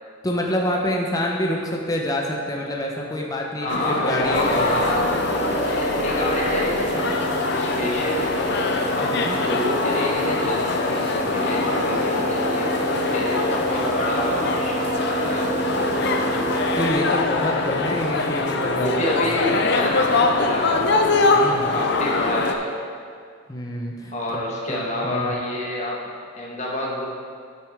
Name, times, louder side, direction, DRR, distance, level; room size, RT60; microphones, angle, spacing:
voice 1, 0.2-5.0 8.9-9.4 16.7-19.0 19.2-19.4 21.3-21.7 23.5-24.4 24.7-25.3, left 1 dB, 20° left, -2 dB, 0.9 m, -27 dB
voice 2, 3.6-5.2 5.6-8.4 8.9-16.2 18.8-21.1 21.5-22.8 24.1-27.1, left 1 dB, 35° left, -3 dB, 1.4 m, -28 dB
sound 1, 3.7-22.5, left 3 dB, 55° left, 0.6 m, -23 dB
sound 2, 4.2-8.1, right 2 dB, 70° right, 1.3 m, -38 dB
sound 3, 4.3-16.9, right 1 dB, 35° right, 0.7 m, -29 dB
8.6 x 8.3 x 3.6 m, 2.2 s
head